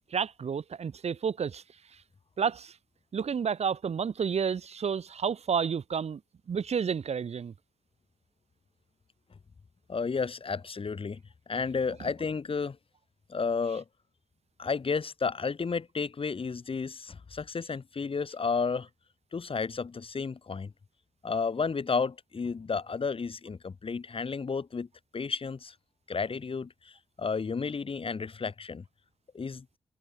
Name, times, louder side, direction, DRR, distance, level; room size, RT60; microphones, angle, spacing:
voice 1, 0.1-1.6 2.4-2.8 3.1-6.2 6.5-7.5, right 6 dB, 90° right, 1.8 m, -30 dB
voice 2, 9.9-11.2 11.5-12.8 13.3-13.8 14.6-18.9 19.3-20.7 21.2-24.9 25.1-25.7 26.1-28.8 29.3-29.6, left 5 dB, 60° left, 1.4 m, -32 dB
wide cardioid pair, 70°, 11 cm